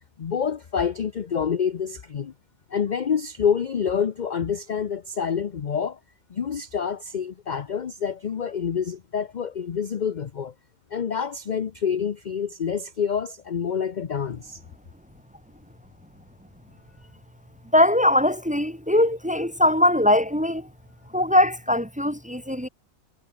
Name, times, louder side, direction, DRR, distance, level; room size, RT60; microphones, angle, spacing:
voice 1, 0.2-2.3 2.7-6.0 6.3-10.5 10.9-14.6, left 7 dB, 45° left, 0.7 m, -27 dB
voice 2, 17.7-20.7 21.1-22.7, left 1 dB, 5° right, 1.2 m, -21 dB
omnidirectional pair, 1.5 m